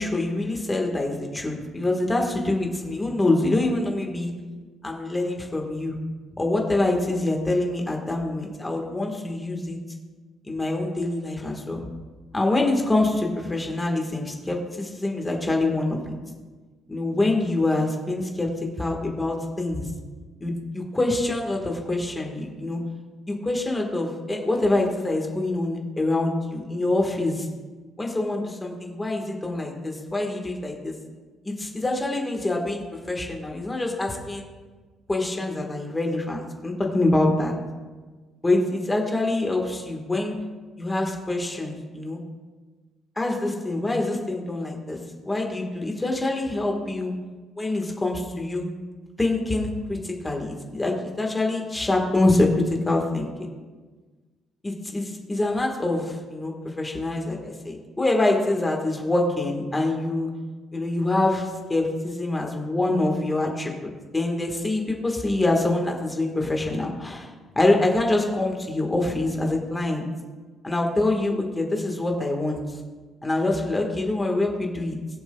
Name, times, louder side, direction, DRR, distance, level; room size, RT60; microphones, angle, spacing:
voice 1, 0.0-4.3 4.8-5.9 6.4-9.8 10.5-11.8 12.3-16.0 16.9-18.5 18.8-19.9 20.4-22.8 23.3-27.5 28.0-30.9 31.4-32.8 33.1-34.4 35.1-37.5 38.4-40.4 40.8-42.2 43.2-45.0 45.2-47.1 47.6-48.6 49.2-52.5 52.8-53.3 54.6-60.3 60.7-63.7 64.1-70.0 70.6-72.6 73.2-75.0, left 2 dB, 15° left, 1 dB, 1.4 m, -25 dB
21.0 x 7.0 x 2.3 m, 1.3 s
cardioid pair, 150°, 0 cm